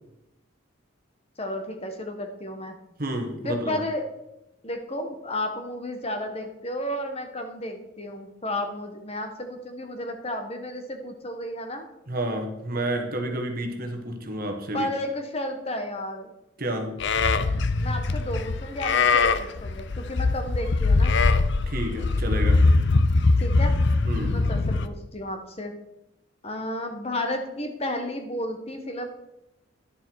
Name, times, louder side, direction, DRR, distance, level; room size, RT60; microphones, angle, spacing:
voice 1, 1.4-2.8 3.4-4.1 4.6-11.9 14.7-16.3 17.8-21.2 23.4-23.8 24.3-25.7 26.4-29.1, left 1 dB, 30° left, 5 dB, 1.1 m, -32 dB
voice 2, 3.0-3.8 12.1-14.9 16.6-17.0 21.7-22.6 24.0-24.4, right 1 dB, 45° right, 3 dB, 1.4 m, -30 dB
Livestock farm animals working animals, 17.0-24.9, left 3 dB, 60° left, 0.6 m, -22 dB
11.0 x 7.0 x 4.6 m, 0.89 s
head